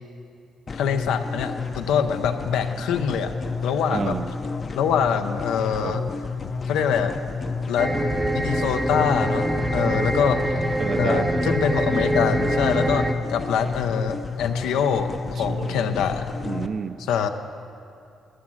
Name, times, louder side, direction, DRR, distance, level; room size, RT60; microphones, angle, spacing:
voice 1, 0.7-3.3 3.6-4.1 4.7-6.0 6.7-7.2 7.7-7.9 8.3-10.4 11.0-13.0 13.3-16.3 17.1-17.3, left 7 dB, 90° left, 8 dB, 0.6 m, -24 dB
sound 1, 0.7-16.7, left 4 dB, 40° left, 0.6 m, -31 dB
voice 2, 3.9-4.3 5.8-6.0 9.8-10.1 10.8-11.5 15.4-15.9 16.4-17.0, right 6 dB, 50° right, 13 dB, 0.4 m, -30 dB
sound 2, 7.8-13.1, right 1 dB, 10° right, 0.7 m, -25 dB
11.0 x 9.5 x 6.2 m, 2.5 s
cardioid pair, 90°, 0 cm